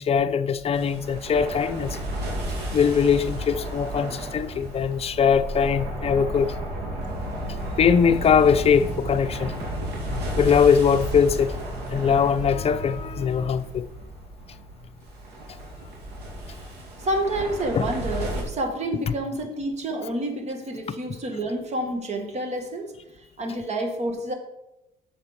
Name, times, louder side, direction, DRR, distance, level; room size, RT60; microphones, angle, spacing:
voice 1, 0.0-2.0 2.7-6.6 7.8-9.5 10.4-11.6 11.9-13.9 17.7-17.9 19.1-19.2 20.9-21.0, left 7 dB, 35° left, 0.6 m, -21 dB
sound 1, 0.7-18.4, right 1 dB, 80° right, 2.6 m, -33 dB
voice 2, 17.0-22.9 23.4-24.3, right 1 dB, 40° right, 1.8 m, -29 dB
7.6 x 6.6 x 5.2 m
cardioid pair, 110°, 17 cm